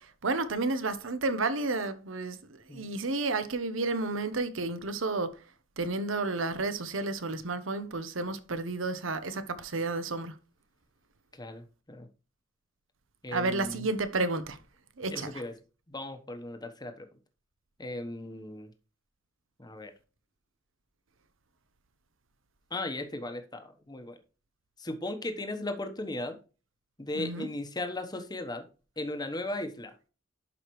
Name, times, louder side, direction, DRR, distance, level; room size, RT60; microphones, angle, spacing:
voice 1, 0.2-2.4 2.7-5.3 5.8-10.3 13.3-14.6 15.0-15.3 27.1-27.5, right 3 dB, 85° right, 0.9 m, -31 dB
voice 2, 11.4-12.1 13.2-13.9 15.1-15.5 15.9-17.1 17.8-18.7 19.6-19.9 22.7-24.2 24.8-26.4 27.0-28.6 29.0-29.9, left 2 dB, 20° left, 1.0 m, -37 dB
11.0 x 4.9 x 3.1 m
head